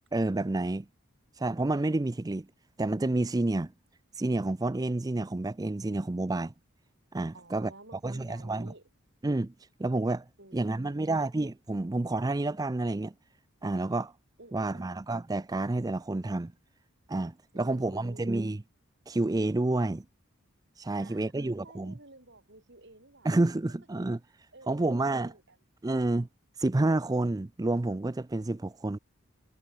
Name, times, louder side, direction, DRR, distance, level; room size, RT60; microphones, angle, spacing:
voice 1, 0.1-0.9 1.3-2.5 2.8-3.7 4.1-6.5 7.1-7.7 8.0-8.7 9.2-10.3 10.5-13.1 13.6-14.1 14.5-16.5 17.1-18.6 19.1-20.0 20.8-21.9 23.2-25.3 25.8-26.3 26.5-29.0, right 2 dB, 15° right, 0.4 m, -29 dB
voice 2, 7.3-8.8 10.4-11.2 14.4-14.9 17.5-18.4 20.9-23.3 24.5-25.6, right 2 dB, 50° right, 5.8 m, -53 dB
head